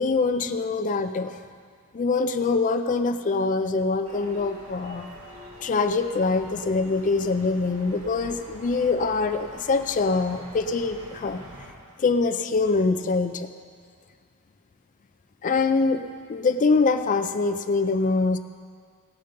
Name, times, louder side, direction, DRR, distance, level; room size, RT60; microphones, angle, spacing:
voice 1, 0.0-1.3 1.9-5.1 5.6-11.4 12.0-13.5 15.4-16.0 16.3-18.4, left 4 dB, 35° left, 9 dB, 0.4 m, -24 dB
sound 1, 4.0-11.7, equal, 65° right, 1.8 m, -45 dB
17.5 x 6.7 x 5.2 m, 2.1 s
head